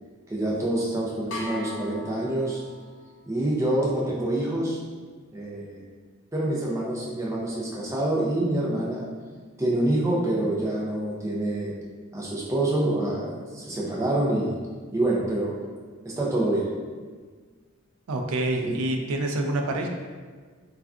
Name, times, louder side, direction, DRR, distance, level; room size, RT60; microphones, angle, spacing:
voice 1, 0.3-2.6 3.3-4.8 5.3-5.9 6.3-9.1 9.6-11.7 12.1-14.6 14.9-15.6 16.0-16.7 18.7-18.8, right 1 dB, 15° right, -4 dB, 0.4 m, -26 dB
sound 1, 1.3-3.1, left 3 dB, 60° left, 0.5 m, -39 dB
voice 2, 18.1-19.9, right 1 dB, 85° right, 3 dB, 0.4 m, -27 dB
3.4 x 2.3 x 2.4 m, 1.5 s
head